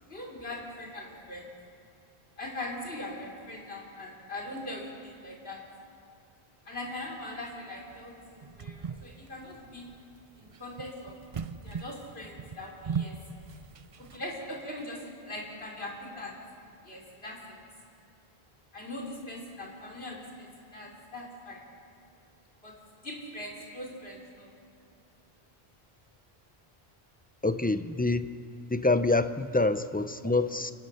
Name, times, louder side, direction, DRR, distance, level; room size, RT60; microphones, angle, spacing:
voice 1, 0.1-1.5 2.4-5.6 6.7-9.8 10.4-11.2 11.6-13.1 14.0-16.4 16.8-17.7 18.7-21.6 22.6-22.7 23.0-24.5, left 1 dB, 75° left, -2 dB, 4.4 m, -41 dB
sound 1, 7.9-14.2, right 6 dB, 40° right, 0.6 m, -39 dB
voice 2, 27.4-28.3 28.7-30.7, left 2 dB, 10° left, 11 dB, 0.5 m, -26 dB
29.5 x 16.5 x 6.5 m, 2.5 s
omnidirectional pair, 1.0 m